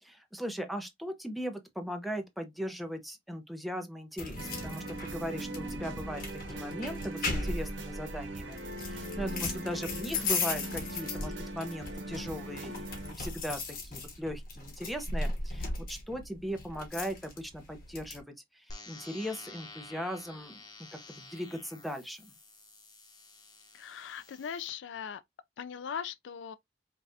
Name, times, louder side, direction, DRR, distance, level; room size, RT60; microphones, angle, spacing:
voice 1, 0.0-18.2 18.5-20.6 20.9-22.3, equal, ahead, 0.7 m, -39 dB
sound 1, 4.2-18.2, left 3 dB, 50° left, 1.1 m, -37 dB
sound 2, 4.4-13.1, right 1 dB, 90° right, 1.0 m, -40 dB
sound 3, 18.7-24.7, left 3 dB, 20° left, 0.9 m, -50 dB
voice 2, 23.7-25.2 25.6-26.6, left 7 dB, 75° left, 0.4 m, -39 dB
5.2 x 2.4 x 2.7 m
head